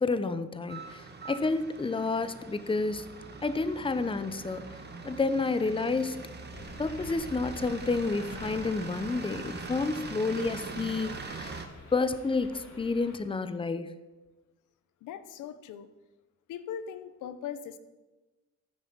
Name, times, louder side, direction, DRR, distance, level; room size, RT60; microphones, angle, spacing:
voice 1, 0.0-3.1 3.4-4.6 5.0-6.2 6.8-11.6 11.9-13.9, left 3 dB, 15° left, 12 dB, 0.9 m, -30 dB
sound 1, 0.7-11.7, right 4 dB, 35° right, 1.8 m, -42 dB
sound 2, 6.5-13.2, left 2 dB, 65° left, 3.2 m, -48 dB
voice 2, 15.0-15.9 16.5-17.8, left 8 dB, 90° left, 11 dB, 0.9 m, -40 dB
12.0 x 9.5 x 6.2 m, 1.1 s
cardioid pair, 90°, 30 cm